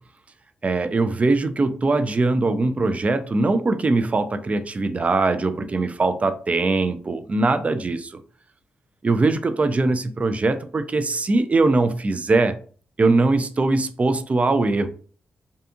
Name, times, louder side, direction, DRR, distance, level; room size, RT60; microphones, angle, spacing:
voice 1, 0.6-8.2 9.0-12.6 13.0-14.9, right 3 dB, 35° right, 10 dB, 0.4 m, -21 dB
2.6 x 2.4 x 2.4 m, 0.43 s
supercardioid pair, 45°, 4 cm